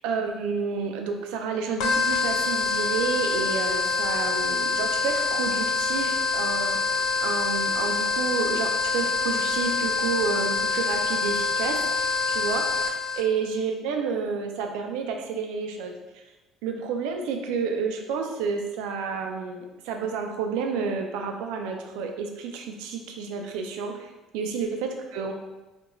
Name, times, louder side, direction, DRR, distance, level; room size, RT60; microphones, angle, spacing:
voice 1, 0.0-16.2 16.6-25.3, right 5 dB, 85° right, 4 dB, 0.3 m, -30 dB
sound 1, 1.8-13.2, left 4 dB, 80° left, 0.3 m, -25 dB
2.4 x 2.1 x 2.9 m, 1.1 s
supercardioid pair, 85°, 0 cm